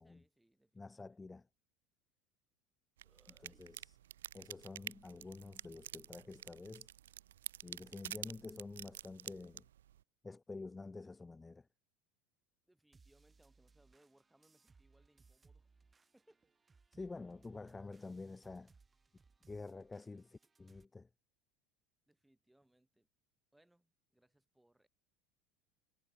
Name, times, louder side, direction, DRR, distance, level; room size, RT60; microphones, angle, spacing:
voice 1, 0.0-1.2 3.0-3.7 12.7-15.7 16.1-16.4 22.1-23.1 23.5-24.9, right 1 dB, 5° right, 6.8 m, -72 dB
voice 2, 0.7-1.5 3.4-4.0 4.3-6.9 7.6-9.6 10.2-11.7 16.9-18.7 19.5-21.1, left 3 dB, 15° left, 0.7 m, -49 dB
sound 1, 3.0-10.0, right 12 dB, 80° right, 0.7 m, -49 dB
sound 2, 12.9-20.9, right 4 dB, 20° right, 7.6 m, -68 dB
hypercardioid pair, 80°, 0 cm